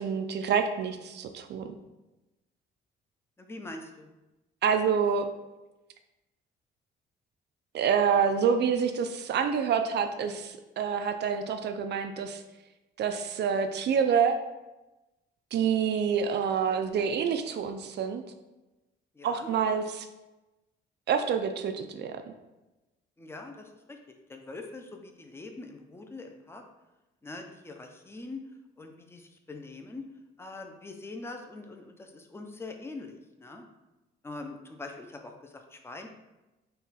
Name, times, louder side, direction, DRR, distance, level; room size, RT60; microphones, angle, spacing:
voice 1, 0.0-1.8 4.6-5.3 7.7-12.4 13.0-14.4 15.5-18.2 19.2-20.1 21.1-22.2, right 7 dB, 60° right, 7 dB, 0.4 m, -27 dB
voice 2, 3.4-4.1 19.1-19.5 23.2-26.6 27.2-28.4 28.8-30.0 30.4-33.6 34.2-36.1, left 2 dB, 10° left, 4 dB, 0.5 m, -43 dB
3.8 x 2.3 x 4.1 m, 1.0 s
cardioid pair, 90°, 20 cm